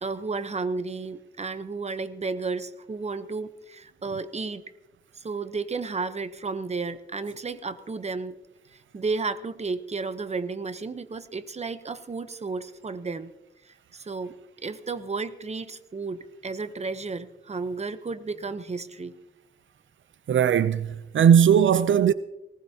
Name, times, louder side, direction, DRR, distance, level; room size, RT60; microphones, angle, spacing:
voice 1, 0.0-4.6 5.2-8.4 8.7-13.3 13.6-14.3 14.6-19.1, right 4 dB, 35° right, 0.8 m, -33 dB
voice 2, 20.3-20.9 21.1-22.1, right 8 dB, 80° right, 0.5 m, -18 dB
19.5 x 18.5 x 2.8 m
wide cardioid pair, 100°, 20 cm